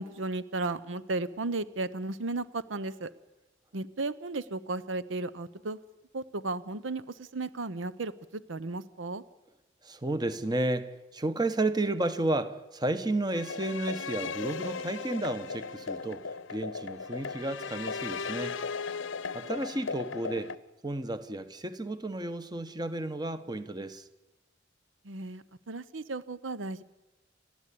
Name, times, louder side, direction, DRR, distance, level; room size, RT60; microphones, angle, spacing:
voice 1, 0.0-3.1 3.7-5.8 6.1-9.2 25.0-26.8, right 3 dB, 90° right, 15 dB, 0.8 m, -35 dB
voice 2, 9.8-18.5 19.3-20.5 20.8-24.1, right 2 dB, 20° right, 11 dB, 1.1 m, -32 dB
sound 1, 13.3-20.6, left 5 dB, 85° left, 0.8 m, -37 dB
29.0 x 12.5 x 8.5 m, 1.1 s
head